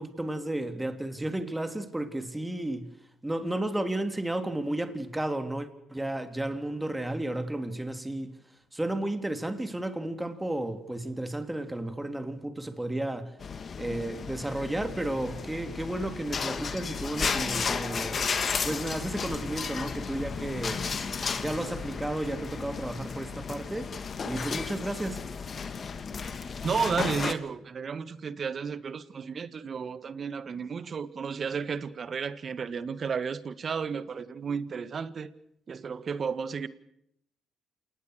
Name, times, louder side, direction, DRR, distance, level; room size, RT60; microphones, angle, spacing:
voice 1, 0.0-2.9 3.2-8.4 8.7-13.3 13.8-18.3 18.6-20.8 21.4-23.9 24.2-25.2, right 1 dB, 10° right, 3.4 m, -33 dB
sound 1, 13.4-27.3, left 5 dB, 45° left, 2.6 m, -33 dB
voice 2, 26.6-35.3 35.7-36.7, right 6 dB, 45° right, 1.9 m, -33 dB
28.0 x 19.5 x 6.6 m
supercardioid pair, 70°, 0 cm